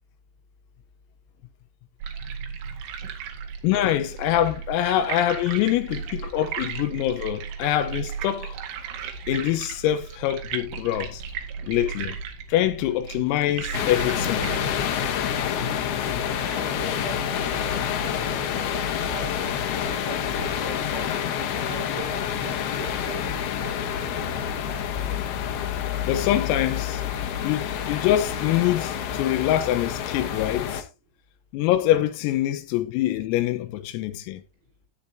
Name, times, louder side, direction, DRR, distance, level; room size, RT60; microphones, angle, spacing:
sound 1, 2.0-15.1, right 7 dB, 75° right, 4.0 m, -35 dB
voice 1, 3.6-8.6 9.3-11.2 11.7-12.2 12.5-14.6 26.0-27.0 27.4-30.8 31.5-34.4, left 13 dB, 90° left, 3.8 m, -24 dB
sound 2, 13.7-30.8, left 8 dB, 70° left, 2.6 m, -28 dB
voice 2, 15.4-17.7 18.0-21.1 21.4-24.0, right 4 dB, 90° right, 7.2 m, -41 dB
14.5 x 8.9 x 2.8 m
omnidirectional pair, 5.9 m